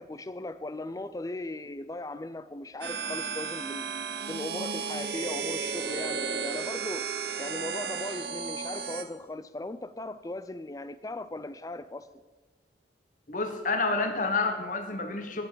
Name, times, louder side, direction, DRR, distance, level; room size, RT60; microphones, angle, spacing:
voice 1, 0.0-3.9 4.3-7.1 7.4-12.1, left 2 dB, 20° left, 0.4 m, -38 dB
sound 1, 2.8-9.0, right 5 dB, 60° right, 0.9 m, -34 dB
voice 2, 13.3-15.5, left 3 dB, 45° left, 1.3 m, -29 dB
16.5 x 5.8 x 6.8 m
head